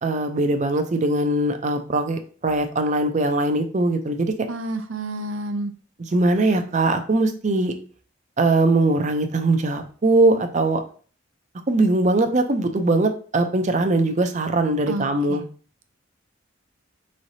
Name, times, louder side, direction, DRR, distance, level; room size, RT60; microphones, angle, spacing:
voice 1, 0.0-4.5 6.1-7.7 8.4-10.8 11.7-15.4, right 2 dB, 35° right, 7 dB, 0.5 m, -21 dB
voice 2, 4.5-5.7 14.9-15.4, right 2 dB, 80° right, 7 dB, 0.6 m, -30 dB
4.9 x 3.2 x 2.7 m, 0.41 s
head